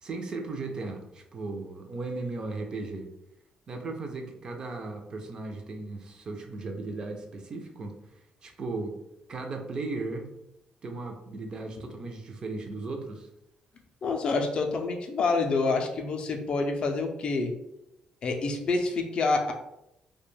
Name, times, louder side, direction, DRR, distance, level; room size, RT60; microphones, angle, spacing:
voice 1, 0.0-3.1 3.7-9.0 9.3-10.3 10.8-13.3, right 3 dB, 35° right, 4 dB, 0.4 m, -36 dB
voice 2, 14.0-17.5 18.2-19.5, left 3 dB, 40° left, 4 dB, 0.3 m, -27 dB
2.3 x 2.1 x 3.1 m, 0.84 s
cardioid pair, 160°, 2 cm